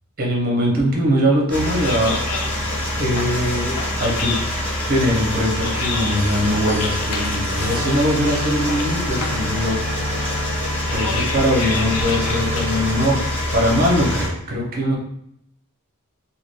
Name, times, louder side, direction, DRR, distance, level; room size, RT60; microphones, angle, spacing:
voice 1, 0.2-2.2 3.0-3.7 4.0-4.4 4.9-9.8 10.9-15.0, equal, 45° right, -1 dB, 0.7 m, -21 dB
sound 1, 1.5-14.3, left 1 dB, 10° left, 0.6 m, -25 dB
sound 2, 1.7-13.8, left 4 dB, 70° left, 0.4 m, -32 dB
Wind instrument woodwind instrument, 7.5-13.5, left 2 dB, 80° right, 0.4 m, -32 dB
2.4 x 2.2 x 3.3 m, 0.71 s
head